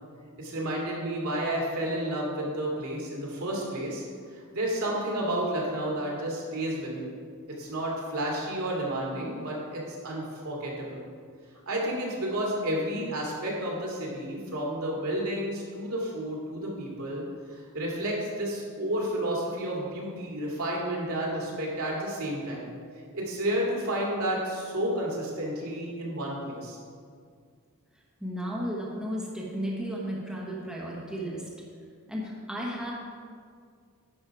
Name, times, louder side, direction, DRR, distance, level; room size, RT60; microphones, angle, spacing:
voice 1, 0.4-7.1 7.6-11.0 11.7-17.2 17.5-22.7 23.1-26.8, right 1 dB, 75° right, -3 dB, 2.4 m, -31 dB
voice 2, 28.2-31.4 32.1-32.9, equal, 5° right, -4 dB, 1.2 m, -34 dB
10.0 x 6.3 x 4.7 m, 2.1 s
head